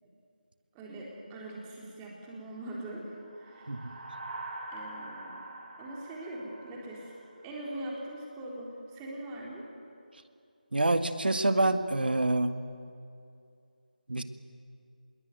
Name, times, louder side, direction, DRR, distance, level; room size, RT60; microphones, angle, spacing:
voice 1, 0.7-4.0 4.7-5.5 5.8-7.1 7.4-9.7, right 1 dB, 10° right, -3 dB, 3.8 m, -42 dB
sound 1, 3.2-7.8, right 2 dB, 60° right, 6.9 m, -44 dB
voice 2, 10.7-12.5 14.1-14.2, right 2 dB, 85° right, 8 dB, 2.1 m, -26 dB
26.0 x 22.0 x 9.4 m, 2.4 s
figure-of-eight pair, 170°, 5 cm